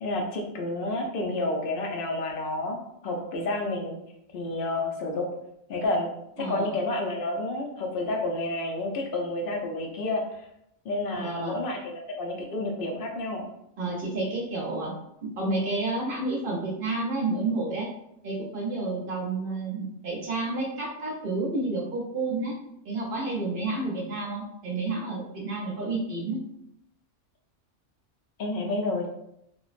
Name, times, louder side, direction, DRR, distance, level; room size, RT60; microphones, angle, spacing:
voice 1, 0.0-2.8 3.0-4.0 4.3-5.3 5.7-6.1 6.5-10.4 10.8-13.4 28.4-29.1, left 2 dB, 60° left, 1 dB, 0.6 m, -30 dB
voice 2, 11.1-11.6 13.8-14.9 15.2-17.9 18.2-22.6 22.9-26.4, right 2 dB, 55° right, -2 dB, 0.6 m, -30 dB
3.0 x 2.0 x 2.4 m, 0.79 s
omnidirectional pair, 1.2 m